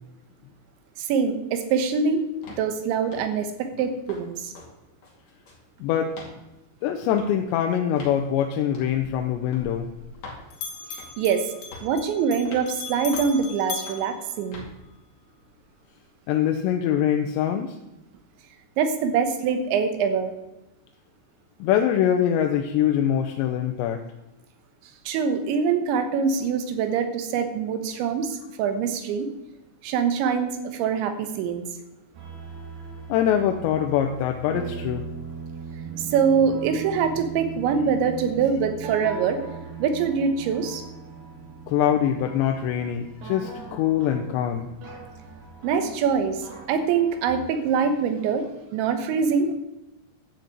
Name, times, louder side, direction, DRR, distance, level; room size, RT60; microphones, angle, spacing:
voice 1, 1.0-2.2 2.6-4.5 10.9-11.5 11.8-14.7 18.8-20.3 25.1-29.3 29.8-31.6 36.0-39.4 39.8-40.9 45.6-48.5 48.7-49.6, right 6 dB, 80° right, 8 dB, 3.4 m, -24 dB
sound 1, 2.4-2.7 3.1-3.4 3.8-4.2 4.5-4.7 5.0-5.7 6.1-6.4 7.1-7.3 8.0-8.2 8.7-8.9 9.5-9.7 10.2-10.4 11.0-11.3 11.7-12.0 12.5-12.7 13.1-13.4 13.9-14.1 14.5-14.7, left 3 dB, 40° left, 3.1 m, -42 dB
voice 2, 5.8-6.1 6.8-9.9 16.3-17.8 21.6-24.0 33.1-35.1 41.7-44.7, left 10 dB, 80° left, 4 dB, 2.9 m, -23 dB
Bell, 8.9-10.3 10.5-15.0, left 5 dB, 60° left, 2.9 m, -38 dB
sound 2, 32.1-47.4, right 5 dB, 65° right, 4.0 m, -39 dB
11.5 x 6.5 x 8.3 m, 0.96 s
omnidirectional pair, 5.2 m